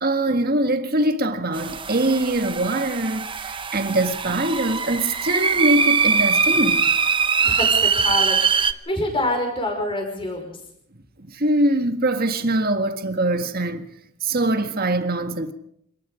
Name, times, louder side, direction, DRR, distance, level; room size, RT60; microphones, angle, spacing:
voice 1, 0.0-6.9 11.2-13.9 14.2-15.5, right 1 dB, 40° right, 1.8 m, -23 dB
sound 1, 1.5-8.7, right 5 dB, 20° right, 0.8 m, -22 dB
voice 2, 7.5-10.6, left 1 dB, 25° left, 5.5 m, -26 dB
26.5 x 19.5 x 5.1 m
head